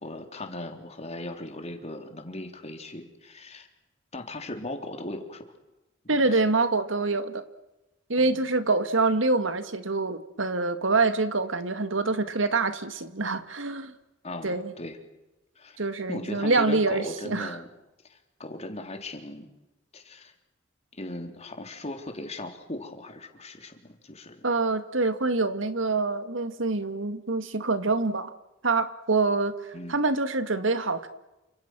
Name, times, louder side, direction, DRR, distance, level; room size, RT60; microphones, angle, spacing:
voice 1, 0.0-3.7 4.1-5.5 6.1-6.4 8.2-8.5 14.2-15.0 15.6-15.8 16.1-17.7 18.0-19.5 19.9-20.3 20.9-24.5 29.7-30.0, left 1 dB, 35° left, 5 dB, 3.6 m, -38 dB
voice 2, 6.1-7.4 8.1-13.9 14.4-14.7 15.8-17.6 24.4-28.3 28.6-29.6 29.9-31.1, right 3 dB, 80° right, 10 dB, 2.0 m, -25 dB
29.5 x 26.5 x 6.2 m, 0.99 s
head